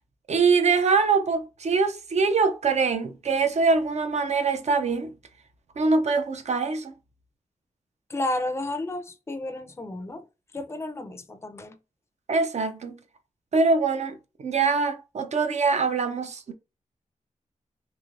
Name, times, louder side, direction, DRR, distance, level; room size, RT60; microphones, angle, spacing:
voice 1, 0.3-5.1 5.8-6.9 12.3-13.0 13.5-16.5, right 4 dB, 55° right, 0.6 m, -23 dB
voice 2, 8.1-10.2 10.5-11.7, left 1 dB, 20° left, 0.5 m, -32 dB
3.1 x 2.9 x 2.5 m
cardioid pair, 75°, 13 cm